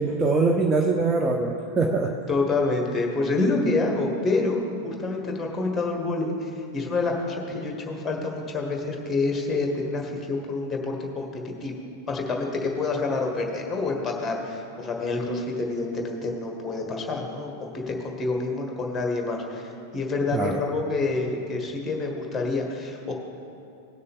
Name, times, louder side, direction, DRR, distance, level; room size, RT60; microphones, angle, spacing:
voice 1, 0.0-2.2 20.3-20.6, right 3 dB, 20° right, 2 dB, 0.6 m, -23 dB
voice 2, 2.3-11.7 12.1-23.1, left 3 dB, 15° left, 1 dB, 1.6 m, -27 dB
17.5 x 6.5 x 3.6 m, 2.6 s
figure-of-eight pair, 90°, 0 cm